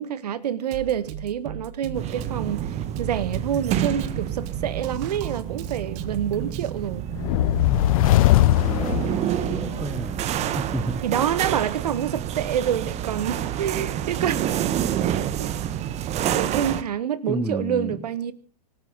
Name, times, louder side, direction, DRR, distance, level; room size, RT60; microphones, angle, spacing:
voice 1, 0.0-2.7 3.0-7.1 11.0-14.5 15.0-15.5 16.3-18.3, right 9 dB, 70° right, 1.7 m, -27 dB
Drum kit, 0.7-6.7, right 9 dB, 45° right, 1.7 m, -37 dB
sound 1, 1.9-16.8, right 10 dB, 30° right, 1.5 m, -28 dB
sound 2, 7.1-9.9, left 16 dB, 55° left, 0.7 m, -20 dB
voice 2, 8.6-11.0 17.3-18.1, right 1 dB, ahead, 1.1 m, -32 dB
24.5 x 13.0 x 4.0 m
hypercardioid pair, 105°, 21 cm